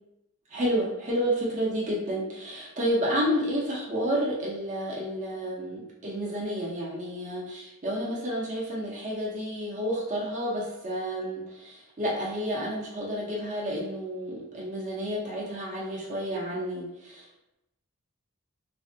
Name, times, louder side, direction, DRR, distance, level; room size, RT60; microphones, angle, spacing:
voice 1, 0.5-17.2, equal, 35° right, -5 dB, 0.6 m, -30 dB
3.3 x 2.1 x 2.6 m, 0.91 s
head